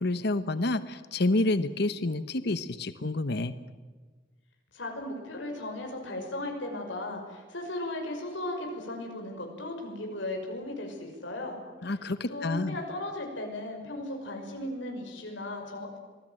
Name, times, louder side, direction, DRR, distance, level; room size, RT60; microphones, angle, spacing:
voice 1, 0.0-3.6 11.8-12.8, left 2 dB, 60° left, 13 dB, 1.1 m, -28 dB
voice 2, 4.7-11.6 12.3-16.0, left 1 dB, 80° left, 2 dB, 5.9 m, -36 dB
26.5 x 20.0 x 9.0 m, 1.4 s
head